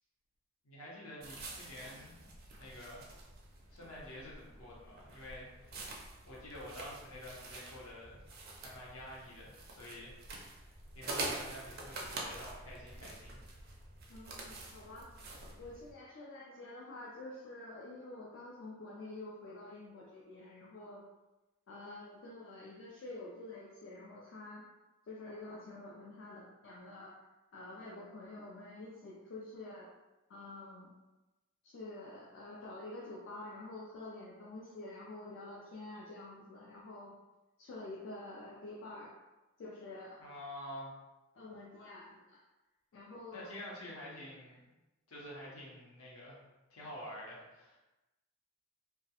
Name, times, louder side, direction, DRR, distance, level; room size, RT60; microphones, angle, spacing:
voice 1, 0.6-2.1 2.6-3.0 3.7-5.9 6.3-8.2 8.6-13.6 40.2-40.9 43.3-44.6 45.1-46.4 46.7-47.8, left 1 dB, 75° left, -4 dB, 0.7 m, -48 dB
sound 1, 1.2-15.9, right 2 dB, 45° right, 0.4 m, -46 dB
voice 2, 14.1-15.1 15.6-21.0 21.7-24.6 25.1-27.1 27.5-29.9 30.3-30.9 31.6-37.1 37.6-39.1 39.6-40.2 41.4-42.4 42.9-43.6, left 2 dB, 60° left, -4 dB, 0.3 m, -48 dB
2.3 x 2.0 x 2.8 m, 1.1 s
head